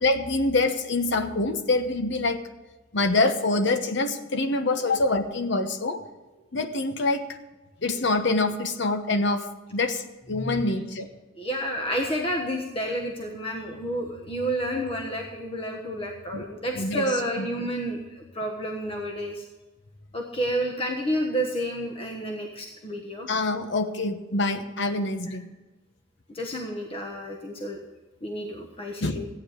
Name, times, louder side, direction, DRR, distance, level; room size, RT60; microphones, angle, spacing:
voice 1, 0.0-2.4 2.9-6.0 6.5-7.3 7.8-11.1 14.7-15.1 16.3-16.4 16.7-17.5 20.5-20.6 23.3-25.5 29.0-29.2, left 2 dB, 60° left, 8 dB, 1.0 m, -26 dB
voice 2, 10.3-10.6 11.4-19.4 20.1-23.3 26.3-27.8 28.2-29.3, equal, 30° left, 1 dB, 1.3 m, -30 dB
14.5 x 9.5 x 5.0 m, 1.2 s
head